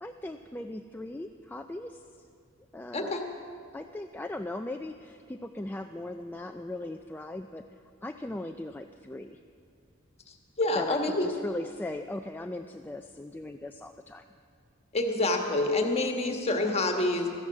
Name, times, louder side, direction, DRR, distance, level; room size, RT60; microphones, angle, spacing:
voice 1, 0.0-2.0 2.7-3.2 3.7-7.6 8.0-9.4 10.7-14.2, left 1 dB, 10° left, 5 dB, 0.3 m, -38 dB
voice 2, 2.9-3.2 10.6-11.3 14.9-17.3, left 2 dB, 30° left, 3 dB, 1.4 m, -27 dB
14.0 x 11.0 x 7.3 m, 2.3 s
head